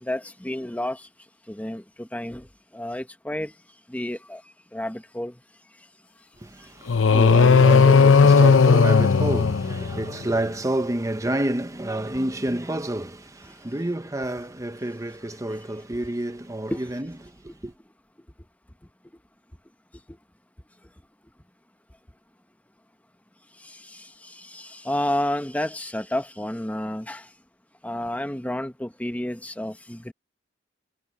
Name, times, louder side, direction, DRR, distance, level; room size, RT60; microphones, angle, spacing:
voice 1, 0.0-1.1 1.5-2.5 2.7-3.5 3.9-4.4 4.7-5.3 16.7-16.8 23.6-27.3 27.8-30.1, left 1 dB, 10° left, 0.9 m, -30 dB
voice 2, 6.4-17.1 17.4-17.7, right 1 dB, 15° right, 0.9 m, -29 dB
sound 1, 6.9-10.2, left 5 dB, 90° left, 0.7 m, -16 dB
head